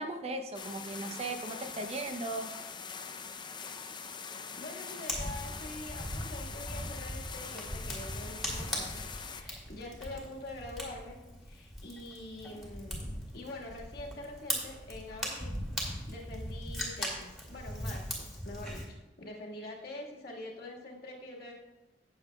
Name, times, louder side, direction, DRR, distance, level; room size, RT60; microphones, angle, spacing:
voice 1, 0.0-2.5, right 2 dB, 35° right, 6 dB, 0.7 m, -37 dB
sound 1, 0.5-9.4, left 5 dB, 25° left, 0.5 m, -43 dB
voice 2, 4.6-9.0 9.3-13.1 13.3-21.5, left 2 dB, 60° left, -1 dB, 1.7 m, -45 dB
Fire, 5.1-18.8, equal, ahead, 2.4 m, -39 dB
16.5 x 7.0 x 2.3 m, 1.1 s
head